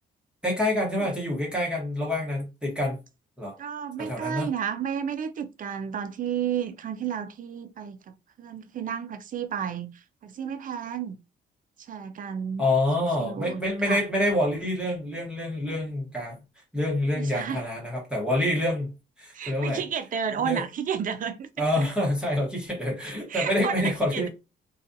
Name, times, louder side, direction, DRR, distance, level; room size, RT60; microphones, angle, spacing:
voice 1, 0.4-3.0 3.4-3.5 4.0-4.5 12.6-16.4 16.7-18.9 19.2-19.8 20.4-20.6 21.6-24.3, left 1 dB, 5° right, 1.0 m, -27 dB
voice 2, 3.6-8.0 8.4-11.2 11.8-12.7 13.2-14.0 17.2-17.6 19.3-21.9 23.3-24.3, right 8 dB, 45° right, 0.4 m, -32 dB
2.4 x 2.3 x 2.6 m
cardioid pair, 90°, 20 cm